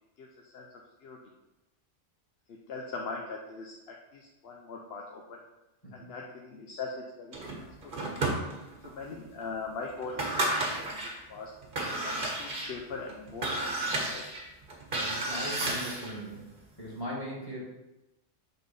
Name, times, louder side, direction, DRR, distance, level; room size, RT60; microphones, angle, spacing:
voice 1, 0.2-0.7 1.0-1.2 2.5-5.4 5.9-8.3 8.8-11.5 12.0-14.3, left 4 dB, 65° left, 0 dB, 0.9 m, -41 dB
voice 2, 5.8-6.1 14.9-17.6, equal, 20° left, -5 dB, 2.0 m, -40 dB
sound 1, 7.3-8.9 9.4-9.5 10.0-11.2 11.6-16.2, right 2 dB, 50° right, 1.2 m, -32 dB
5.8 x 3.7 x 5.3 m, 0.98 s
omnidirectional pair, 1.2 m